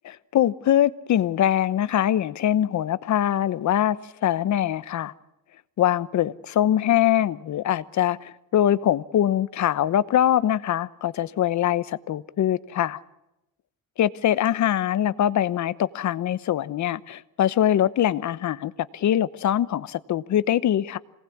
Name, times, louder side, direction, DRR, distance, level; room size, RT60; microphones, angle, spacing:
voice 1, 0.3-4.0 4.2-5.1 5.8-13.0 14.0-21.0, left 11 dB, 55° left, 1.0 m, -23 dB
27.0 x 19.0 x 8.6 m
cardioid pair, 135°, 34 cm